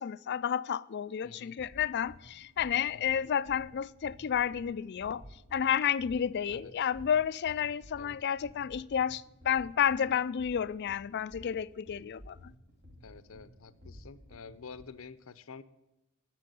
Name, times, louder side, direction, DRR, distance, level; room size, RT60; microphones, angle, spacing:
voice 1, 0.0-5.2 5.5-12.5, left 8 dB, 55° left, 0.4 m, -31 dB
voice 2, 1.2-1.6 2.9-3.2 6.5-6.9 8.0-8.2 13.0-15.6, left 5 dB, 75° left, 0.7 m, -49 dB
sound 1, 1.6-14.8, equal, 45° right, 1.5 m, -54 dB
12.0 x 7.6 x 9.0 m
head